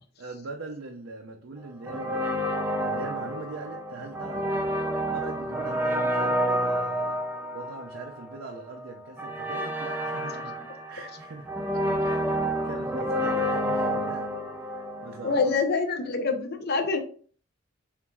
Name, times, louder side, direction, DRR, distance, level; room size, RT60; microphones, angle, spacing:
voice 1, 0.2-2.5 2.8-4.5 5.1-7.2 7.5-11.5 12.0-15.4, right 3 dB, 75° right, 2 dB, 0.6 m, -41 dB
sound 1, 1.8-15.6, equal, 10° right, 0.5 m, -29 dB
voice 2, 15.2-17.0, left 4 dB, 55° left, 6 dB, 0.7 m, -25 dB
6.9 x 2.6 x 2.3 m, 0.43 s
head